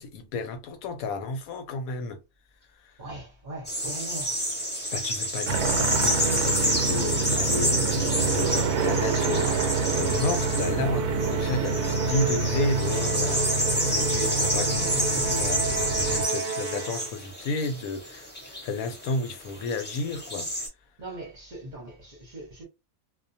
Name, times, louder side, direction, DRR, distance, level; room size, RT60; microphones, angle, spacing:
voice 1, 0.0-2.2 2.7-3.0 4.9-13.5 13.8-20.5, left 3 dB, 75° left, 1.0 m, -32 dB
voice 2, 3.0-4.4 21.0-22.6, right 2 dB, 40° right, 0.8 m, -40 dB
sound 1, 3.6-20.7, equal, 10° left, 0.9 m, -29 dB
sound 2, 5.5-16.3, right 4 dB, 80° right, 1.1 m, -27 dB
Musical instrument, 8.8-17.3, right 4 dB, 55° right, 0.5 m, -33 dB
2.4 x 2.2 x 2.6 m
omnidirectional pair, 1.6 m